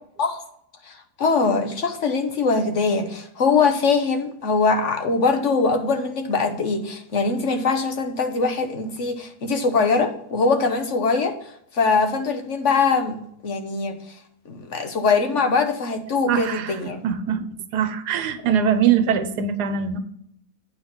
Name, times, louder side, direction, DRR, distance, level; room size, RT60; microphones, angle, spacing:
voice 1, 0.8-14.2 14.5-17.0, left 4 dB, 55° left, 7 dB, 1.0 m, -22 dB
voice 2, 16.3-17.5 17.7-20.0, right 8 dB, 75° right, 10 dB, 1.3 m, -22 dB
8.9 x 4.0 x 7.0 m, 0.72 s
omnidirectional pair, 1.8 m